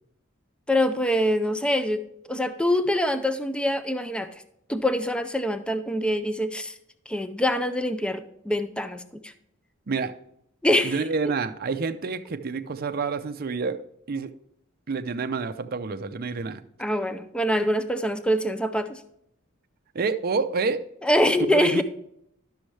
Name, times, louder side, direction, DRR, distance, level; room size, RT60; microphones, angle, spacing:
voice 1, 0.7-2.0 2.3-4.3 4.7-6.7 7.1-9.3 10.6-11.0 16.8-19.0 21.0-21.8, left 1 dB, 5° left, 10 dB, 0.4 m, -24 dB
voice 2, 10.8-13.8 14.1-14.3 14.9-16.6 19.9-20.8 21.5-21.8, right 4 dB, 45° right, 8 dB, 0.5 m, -28 dB
11.5 x 6.3 x 3.2 m, 0.75 s
head